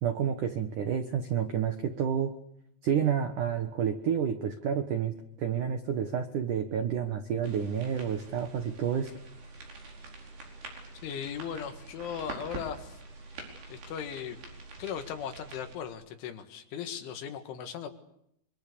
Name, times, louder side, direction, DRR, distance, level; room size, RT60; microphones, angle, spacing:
voice 1, 0.0-2.3 2.8-9.1, right 8 dB, 75° right, 7 dB, 1.8 m, -29 dB
sound 1, 7.4-15.8, right 3 dB, 55° right, 6.7 m, -45 dB
voice 2, 11.0-13.0 13.7-14.4 14.8-17.9, left 8 dB, 75° left, 7 dB, 4.2 m, -38 dB
26.0 x 25.5 x 6.9 m, 0.76 s
omnidirectional pair, 5.8 m